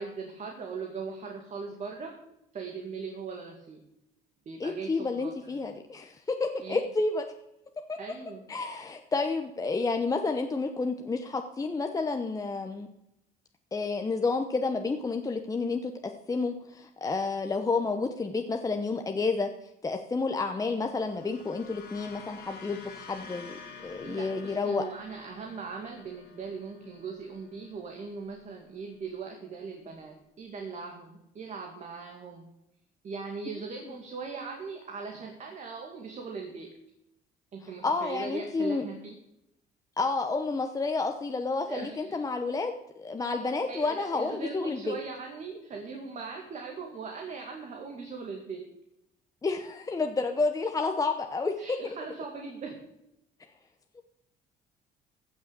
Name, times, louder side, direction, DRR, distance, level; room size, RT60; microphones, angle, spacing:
voice 1, 0.0-2.2 2.5-3.8 4.5-5.6 6.6-6.8 8.0-8.4 24.0-32.5 33.0-36.7 37.5-39.2 41.7-42.2 43.3-48.7 51.6-52.8, right 5 dB, 45° right, 2 dB, 2.2 m, -40 dB
voice 2, 4.6-7.2 7.9-8.0 8.5-12.9 13.7-19.5 19.8-23.5 23.8-24.9 33.5-33.6 37.8-38.8 40.0-45.0 49.4-51.5 51.8-51.9 54.0-54.1, left 3 dB, 20° left, 5 dB, 0.9 m, -30 dB
sound 1, 20.7-29.2, left 5 dB, 85° left, 3.3 m, -50 dB
15.5 x 6.4 x 6.8 m, 0.84 s
cardioid pair, 110°, 17 cm